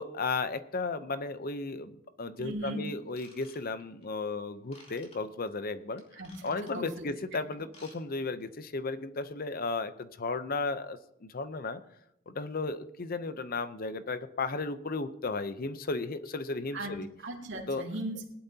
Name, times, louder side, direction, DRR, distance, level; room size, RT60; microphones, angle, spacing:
voice 1, 0.0-6.0 6.4-11.8 12.3-17.1 17.7-17.8, left 3 dB, 45° left, 11 dB, 0.7 m, -34 dB
voice 2, 2.4-2.8 6.1-6.3 6.7-6.9 16.7-16.9 17.2-18.2, right 1 dB, 60° right, -1 dB, 3.1 m, -37 dB
Ratchet pawl / Tools, 3.1-4.0 4.7-5.2 6.0-6.9 7.6-8.0 8.2-8.4 8.9-9.0, left 2 dB, 30° left, 2.8 m, -55 dB
20.0 x 12.0 x 2.8 m, 0.81 s
head